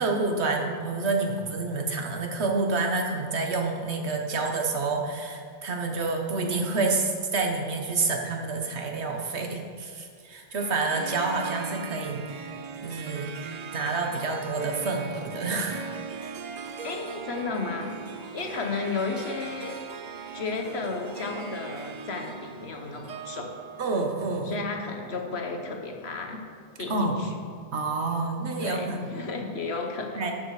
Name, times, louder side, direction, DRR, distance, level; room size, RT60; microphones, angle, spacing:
voice 1, 0.0-12.5 12.8-15.9 23.8-24.6 26.9-27.3 27.7-29.1 30.1-30.3, right 3 dB, 80° right, 2 dB, 1.4 m, -28 dB
Harp, 10.6-25.1, right 6 dB, 50° right, 0.6 m, -40 dB
voice 2, 16.8-19.8 20.3-23.6 24.4-26.4 26.8-27.3 28.6-30.2, left 4 dB, 70° left, 3 dB, 1.4 m, -33 dB
12.0 x 6.7 x 4.9 m, 2.1 s
omnidirectional pair, 1.1 m